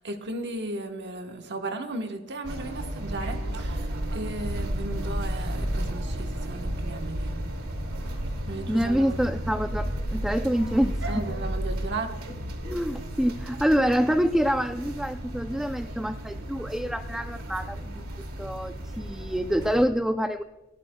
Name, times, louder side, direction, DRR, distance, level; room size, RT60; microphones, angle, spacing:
voice 1, 0.0-7.4 8.4-9.2 11.1-12.2, right 2 dB, 55° right, 4 dB, 1.1 m, -35 dB
sound 1, 2.4-19.9, right 1 dB, 80° right, 2.3 m, -33 dB
voice 2, 8.7-11.2 12.6-18.0 18.4-20.4, equal, ahead, 7 dB, 0.3 m, -26 dB
28.0 x 14.0 x 2.2 m, 1.2 s
head